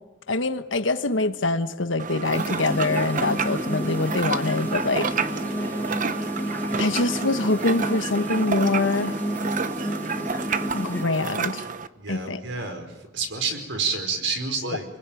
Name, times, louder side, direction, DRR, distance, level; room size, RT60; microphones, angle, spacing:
voice 1, 0.3-5.1 6.8-9.2 10.7-11.7 12.1-12.4, left 2 dB, 85° left, 1.3 m, -24 dB
sound 1, 2.0-11.9, right 5 dB, 45° right, 1.0 m, -30 dB
sound 2, 2.3-11.0, equal, 10° left, 2.1 m, -31 dB
voice 2, 12.0-12.9 13.1-14.8, right 4 dB, 70° right, 5.1 m, -28 dB
28.5 x 21.5 x 9.3 m
head